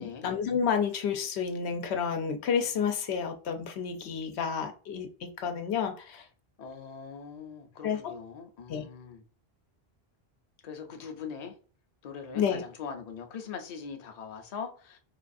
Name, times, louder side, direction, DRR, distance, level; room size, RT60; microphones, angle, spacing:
voice 1, 0.0-6.3 7.8-8.1 8.7-8.8 12.3-12.6, left 7 dB, 85° left, 0.9 m, -30 dB
voice 2, 6.6-9.2 10.6-11.5 12.0-15.0, left 6 dB, 45° left, 0.6 m, -41 dB
4.6 x 2.3 x 2.5 m
omnidirectional pair, 1.1 m